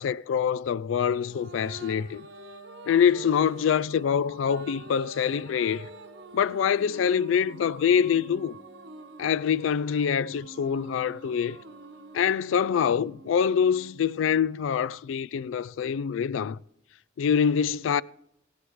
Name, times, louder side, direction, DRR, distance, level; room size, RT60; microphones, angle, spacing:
voice 1, 0.0-2.3 2.9-5.9 6.3-8.6 9.2-11.6 12.1-16.6 17.2-18.0, left 7 dB, 85° left, 0.3 m, -25 dB
sound 1, 1.1-14.7, right 3 dB, 65° right, 1.0 m, -46 dB
16.0 x 11.5 x 3.1 m
head